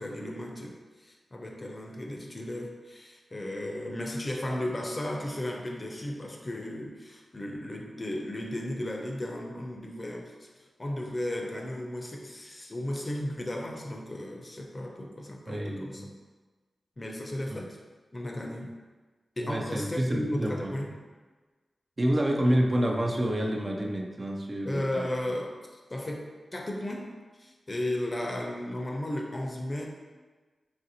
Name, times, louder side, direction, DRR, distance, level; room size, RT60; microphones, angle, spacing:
voice 1, 0.0-16.1 17.0-17.8 18.1-18.7 19.4-20.9 24.6-25.6 25.9-27.1 27.4-29.9, left 1 dB, 35° left, 1 dB, 0.5 m, -35 dB
voice 2, 15.5-16.1 17.5-17.6 19.4-20.7 22.0-25.1, right 1 dB, 40° right, 1 dB, 0.4 m, -28 dB
3.1 x 2.6 x 2.7 m, 1.3 s
cardioid pair, 45°, 0 cm